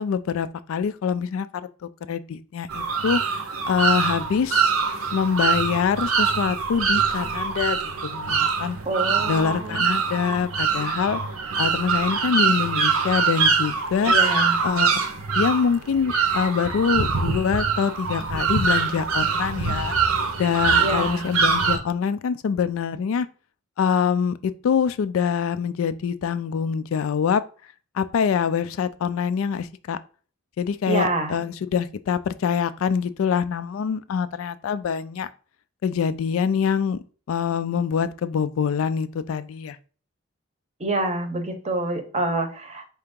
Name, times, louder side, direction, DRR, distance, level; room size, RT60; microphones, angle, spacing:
voice 1, 0.0-1.5 1.8-4.7 5.1-8.8 9.3-11.2 11.6-14.1 14.6-14.9 15.3-19.9 20.4-23.3 23.8-27.4 27.9-30.0 30.6-35.3 35.8-37.0 37.3-39.8, left 7 dB, 75° left, 0.3 m, -25 dB
sound 1, 2.7-21.8, right 5 dB, 90° right, 0.7 m, -24 dB
voice 2, 8.8-9.8 14.1-14.6 20.8-21.3 30.9-31.4 40.8-42.9, right 2 dB, 30° right, 0.7 m, -27 dB
4.4 x 2.9 x 3.6 m
head